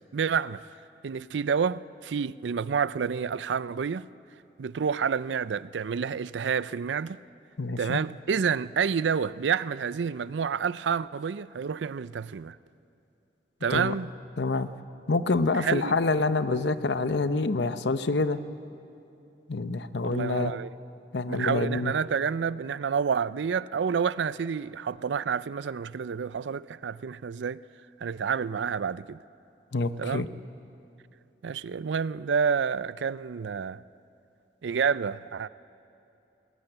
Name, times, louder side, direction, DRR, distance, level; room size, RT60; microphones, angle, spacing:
voice 1, 0.1-0.6 1.0-4.1 4.6-7.2 7.8-12.6 13.6-14.1 15.5-16.0 20.0-20.7 21.3-27.6 28.0-29.2 30.0-30.3 31.4-33.8 34.6-35.5, right 6 dB, 90° right, 0.4 m, -29 dB
voice 2, 7.6-8.0 13.7-13.9 14.4-14.7 15.1-18.4 19.5-20.5 21.1-21.9 29.7-30.3, left 3 dB, 80° left, 0.8 m, -27 dB
21.0 x 19.0 x 8.0 m
head